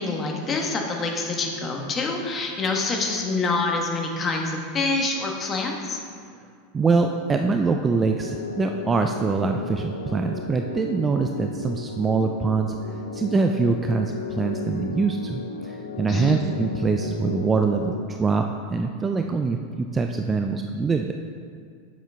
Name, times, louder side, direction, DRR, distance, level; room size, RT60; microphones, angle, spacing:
voice 1, 0.0-6.0 16.1-16.4, left 3 dB, 30° left, 1 dB, 1.3 m, -26 dB
voice 2, 6.7-21.1, right 4 dB, 20° right, 5 dB, 0.4 m, -24 dB
sound 1, 8.2-18.0, left 4 dB, 85° left, 0.5 m, -34 dB
8.1 x 7.2 x 3.6 m, 2.1 s
hypercardioid pair, 90°, 0 cm